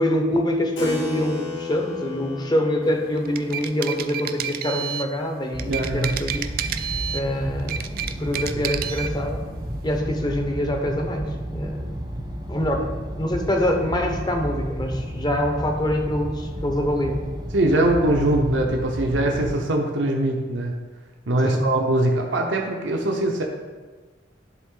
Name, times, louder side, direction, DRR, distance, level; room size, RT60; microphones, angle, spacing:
voice 1, 0.0-6.5 7.1-9.4 9.8-12.0 12.5-17.2 21.4-21.6, left 1 dB, 25° left, 3 dB, 0.7 m, -25 dB
Keyboard (musical), 0.8-6.8, left 4 dB, 70° left, 1.6 m, -36 dB
sound 1, 3.2-5.1 5.6-7.3 7.6-9.1, right 9 dB, 50° right, 0.3 m, -30 dB
sound 2, 5.5-19.5, equal, 25° right, 0.7 m, -32 dB
voice 2, 5.6-6.1 17.5-20.7 21.3-23.4, right 1 dB, 75° right, 1 dB, 0.7 m, -22 dB
10.5 x 3.6 x 3.8 m, 1.4 s
head